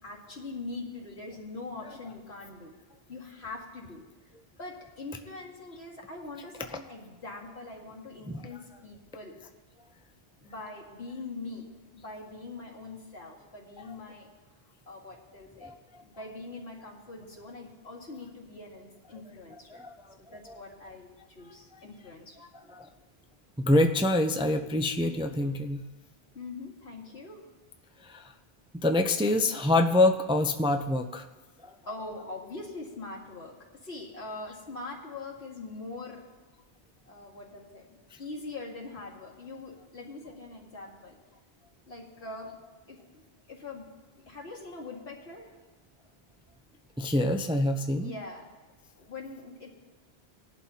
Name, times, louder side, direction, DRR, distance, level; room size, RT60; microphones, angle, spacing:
voice 1, 0.0-2.7 3.1-4.0 4.6-9.4 10.4-11.7 11.9-14.3 14.9-15.7 16.0-19.8 20.2-22.4 26.3-27.4 31.9-36.3 37.0-41.2 41.9-42.6 42.9-43.2 43.5-43.9 44.3-45.6 47.9-48.5 49.0-49.7, left 3 dB, 80° left, -3 dB, 2.2 m, -42 dB
voice 2, 8.3-8.6 13.8-13.9 15.6-15.7 19.7-20.2 20.4-20.6 21.7-21.9 22.4-22.9 23.6-25.8 28.0-28.3 28.7-31.2 31.6-32.2 47.0-48.2, left 1 dB, 10° right, 5 dB, 0.3 m, -27 dB
19.5 x 11.5 x 2.8 m, 1.2 s
omnidirectional pair, 1.1 m